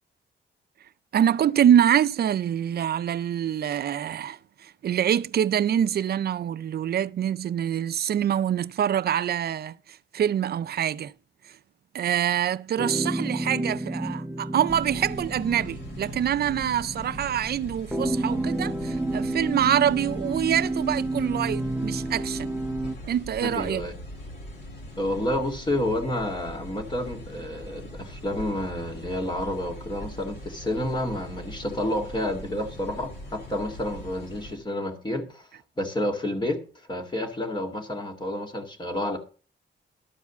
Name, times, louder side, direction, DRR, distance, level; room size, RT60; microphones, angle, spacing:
voice 1, 1.1-11.1 11.4-11.6 11.9-22.5 23.1-23.8, right 10 dB, 55° right, 0.5 m, -25 dB
sound 1, 12.8-23.0, right 1 dB, 5° right, 0.6 m, -30 dB
sound 2, 14.7-34.6, equal, 60° left, 4.3 m, -42 dB
voice 2, 23.4-23.9 25.0-35.5 35.8-36.6 36.9-39.2, left 1 dB, 25° left, 2.0 m, -29 dB
12.5 x 4.8 x 7.0 m
wide cardioid pair, 140°, 20 cm